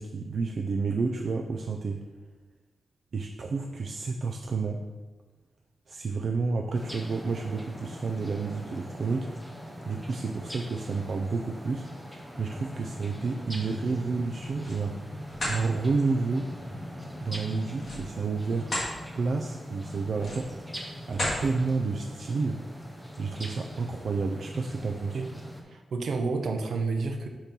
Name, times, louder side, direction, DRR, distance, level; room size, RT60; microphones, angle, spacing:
voice 1, 0.0-2.0 3.1-4.8 5.9-9.3 9.9-11.9 12.4-15.0 15.5-16.5 17.2-18.7 19.1-20.5 21.1-22.6 23.2-25.2, right 4 dB, 50° right, 2 dB, 0.4 m, -30 dB
sound 1, 6.7-25.6, equal, ahead, 0.8 m, -42 dB
sound 2, 14.3-14.8 15.2-15.6 17.7-18.9 19.4-19.6 20.1-20.6 21.1-21.4, left 1 dB, 35° left, 2.2 m, -32 dB
voice 2, 25.7-27.3, right 4 dB, 70° right, 5 dB, 0.8 m, -30 dB
5.2 x 4.4 x 6.0 m, 1.3 s
wide cardioid pair, 165°, 0 cm